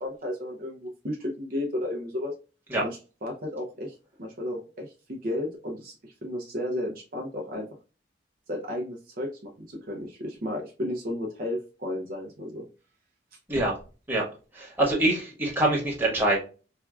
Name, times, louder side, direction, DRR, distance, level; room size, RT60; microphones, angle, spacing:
voice 1, 0.0-2.3 2.8-7.7 8.5-12.7, left 1 dB, 50° right, -1 dB, 0.7 m, -33 dB
voice 2, 14.5-16.4, right 1 dB, 10° right, -4 dB, 1.3 m, -24 dB
4.4 x 2.3 x 2.3 m, 0.34 s
head